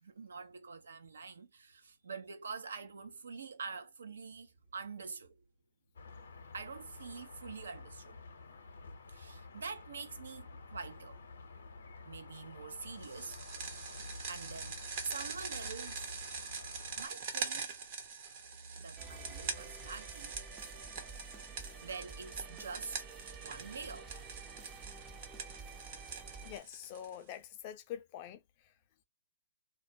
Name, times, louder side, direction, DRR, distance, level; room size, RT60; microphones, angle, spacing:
voice 1, 0.0-5.4 6.5-8.2 9.1-11.2 12.0-13.4 14.3-16.2 17.0-17.8 18.8-20.7 21.8-23.1 23.4-24.1, right 5 dB, 75° right, 0.5 m, -46 dB
sound 1, 6.0-17.1, left 3 dB, 75° left, 0.6 m, -50 dB
sound 2, 13.0-27.3, right 5 dB, 50° right, 0.8 m, -44 dB
sound 3, 19.0-26.6, right 4 dB, 20° right, 0.5 m, -50 dB
voice 2, 26.4-28.4, left 10 dB, 35° left, 0.4 m, -45 dB
2.2 x 2.1 x 2.6 m
hypercardioid pair, 130°, 0 cm